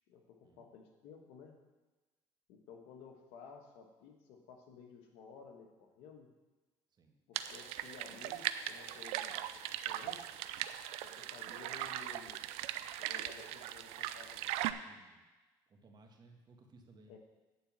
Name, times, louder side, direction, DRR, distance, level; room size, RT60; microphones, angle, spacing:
voice 1, 0.1-1.6 2.5-6.3 7.3-10.5 11.0-12.4 13.0-15.0 17.1-17.2, left 6 dB, 80° left, 3 dB, 1.4 m, -55 dB
sound 1, 7.4-14.7, right 13 dB, 80° right, 0.4 m, -39 dB
voice 2, 14.8-15.3 15.7-17.2, right 2 dB, 45° right, 2 dB, 1.7 m, -61 dB
8.9 x 4.4 x 7.4 m, 1.2 s
supercardioid pair, 80°, 10 cm